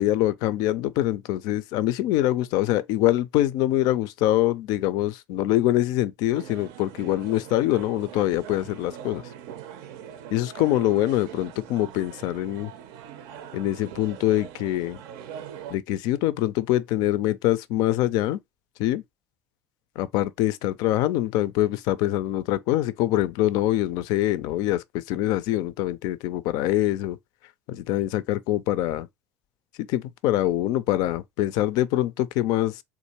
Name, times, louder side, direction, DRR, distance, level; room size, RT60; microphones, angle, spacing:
voice 1, 0.0-9.2 10.3-12.7 13.5-15.0 15.7-18.4 18.8-19.0 20.0-27.2 27.7-29.1 29.8-32.8, left 14 dB, 60° left, 0.4 m, -24 dB
sound 1, 6.3-15.8, right 9 dB, 65° right, 0.5 m, -42 dB
3.5 x 2.5 x 2.8 m
hypercardioid pair, 65°, 8 cm